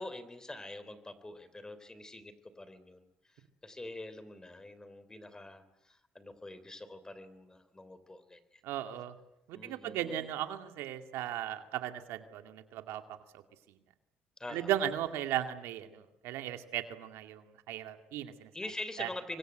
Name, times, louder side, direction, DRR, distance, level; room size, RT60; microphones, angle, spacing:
voice 1, 0.0-3.1 3.6-8.4 9.5-10.3 14.4-14.7 18.5-19.4, left 2 dB, 15° left, 13 dB, 3.3 m, -45 dB
voice 2, 8.6-9.2 9.5-13.2 14.5-18.5 19.0-19.1, right 11 dB, 85° right, 7 dB, 2.3 m, -36 dB
25.5 x 23.5 x 8.1 m, 0.89 s
cardioid pair, 100°, 4 cm